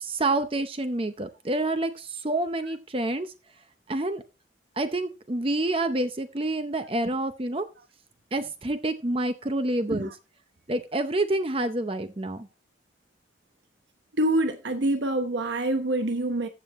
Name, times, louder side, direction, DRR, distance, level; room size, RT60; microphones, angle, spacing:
voice 1, 0.0-3.3 3.9-4.2 4.8-7.7 8.3-10.1 10.7-12.5, right 2 dB, 30° right, 0.7 m, -28 dB
voice 2, 14.2-16.5, right 1 dB, 80° right, 1.1 m, -26 dB
14.5 x 7.1 x 3.1 m
head